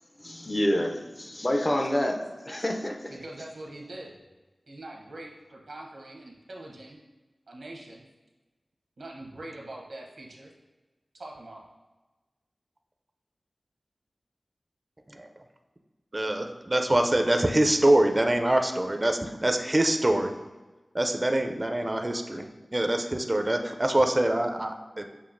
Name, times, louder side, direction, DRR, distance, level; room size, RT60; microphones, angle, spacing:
voice 1, 0.2-3.1, left 1 dB, 30° left, 4 dB, 0.5 m, -28 dB
voice 2, 3.1-4.2 4.7-7.0 7.5-8.0 9.0-10.5 11.1-11.7, right 1 dB, 90° right, -1 dB, 0.8 m, -43 dB
voice 3, 16.1-20.4 20.9-25.0, right 1 dB, 30° right, 5 dB, 0.4 m, -24 dB
6.8 x 2.7 x 2.5 m, 1.2 s
wide cardioid pair, 55°, 0 cm